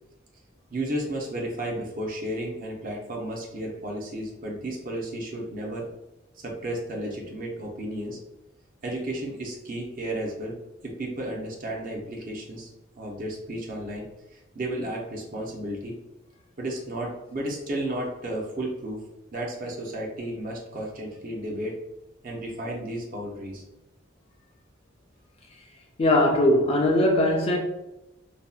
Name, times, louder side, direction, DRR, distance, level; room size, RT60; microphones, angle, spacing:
voice 1, 0.7-5.9 6.4-8.2 8.8-10.6 10.8-12.7 13.0-14.0 14.5-16.0 16.6-19.0 19.3-21.8 22.2-23.6, right 1 dB, 45° right, 0.6 m, -33 dB
voice 2, 26.0-27.6, left 1 dB, 30° left, 0.3 m, -20 dB
2.6 x 2.1 x 2.3 m
head